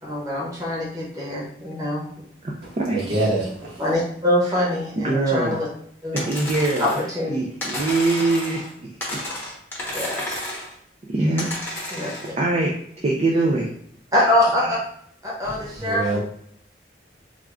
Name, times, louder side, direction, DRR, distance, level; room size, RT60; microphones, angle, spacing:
voice 1, 0.0-2.0 3.8-5.6 6.0-6.2 6.8-6.9 7.1-7.4 9.9-10.3 11.9-12.1 14.1-14.8 15.2-16.2, left 1 dB, 20° right, -6 dB, 1.1 m, -24 dB
voice 2, 2.9-3.8 15.4-16.2, right 2 dB, 70° right, -6 dB, 1.5 m, -26 dB
voice 3, 5.0-5.6 6.2-7.0 7.2-8.6 9.1-9.2 11.1-11.5 12.4-12.7 13.0-13.7, right 2 dB, 35° right, -1 dB, 0.4 m, -22 dB
sound 1, 6.2-7.1 7.6-8.7 9.0-10.7 11.4-12.3, left 1 dB, 10° left, 0.8 m, -31 dB
3.5 x 2.3 x 3.5 m, 0.65 s
head